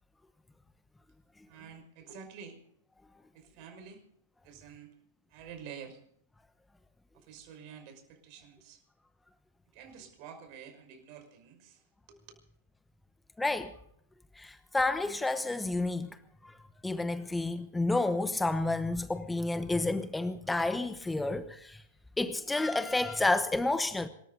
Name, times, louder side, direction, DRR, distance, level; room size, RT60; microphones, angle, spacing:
voice 1, 1.5-2.6 3.3-4.0 4.4-5.0 5.3-6.0 7.1-8.8 9.7-12.2, right 7 dB, 45° right, 5.8 m, -49 dB
voice 2, 13.4-13.7 14.4-16.1 16.4-16.5 16.8-21.8 22.2-24.1, left 2 dB, 5° left, 1.1 m, -30 dB
26.5 x 14.0 x 4.0 m
hypercardioid pair, 110°, 0 cm